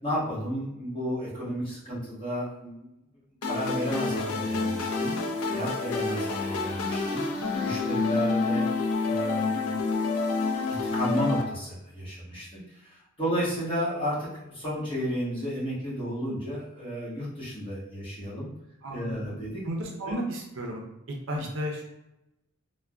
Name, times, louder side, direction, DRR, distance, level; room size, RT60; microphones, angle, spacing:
voice 1, 0.0-2.9 3.4-8.6 9.0-10.1 10.6-18.5 18.9-19.6 20.1-20.2 21.3-21.4, equal, 25° left, -10 dB, 1.2 m, -33 dB
sound 1, 3.4-11.4, left 3 dB, 85° left, 0.4 m, -28 dB
voice 2, 18.8-19.3 19.6-20.8 21.1-21.9, equal, 60° right, 0 dB, 0.5 m, -33 dB
3.3 x 2.2 x 2.3 m, 0.89 s
head